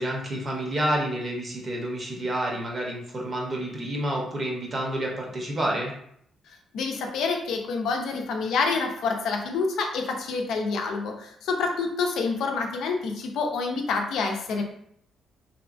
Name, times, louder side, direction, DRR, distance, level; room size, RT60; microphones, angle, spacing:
voice 1, 0.0-5.9, right 1 dB, 35° right, -1 dB, 0.8 m, -29 dB
voice 2, 6.5-14.6, left 4 dB, 80° left, 2 dB, 0.4 m, -27 dB
2.7 x 2.2 x 2.5 m, 0.69 s
cardioid pair, 90°, 0 cm